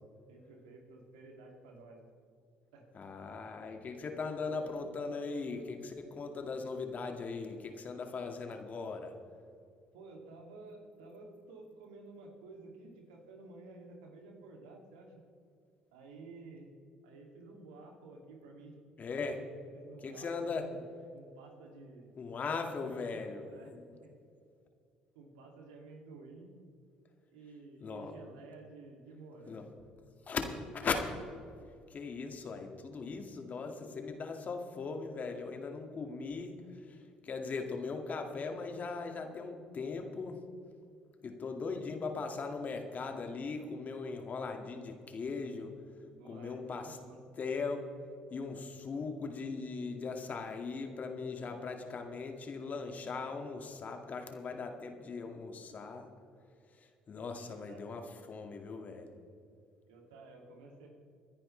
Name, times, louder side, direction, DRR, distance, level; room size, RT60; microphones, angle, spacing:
voice 1, 0.3-2.0 2.7-2.9 4.4-4.7 9.9-15.2 15.9-16.7 17.0-18.8 19.7-20.9 21.1-22.1 22.7-23.0 23.5-23.7 24.0-24.1 25.1-26.6 27.3-29.8 34.2-34.4 41.8-41.9 45.0-45.1 46.1-47.2 51.3-51.8 57.3-57.9 59.9-60.9, right 3 dB, 80° right, 1 dB, 2.6 m, -52 dB
voice 2, 2.9-9.1 19.0-19.4 20.0-20.6 22.2-23.5 27.8-28.1 29.5-29.6 30.3-30.4 30.7-31.2 31.9-37.0 37.2-40.4 41.2-45.7 46.2-47.0 47.4-47.9 48.3-56.1 56.8-58.0 58.3-59.1, left 4 dB, 45° left, 4 dB, 2.1 m, -39 dB
26.5 x 10.0 x 3.3 m, 2.4 s
hypercardioid pair, 60°, 4 cm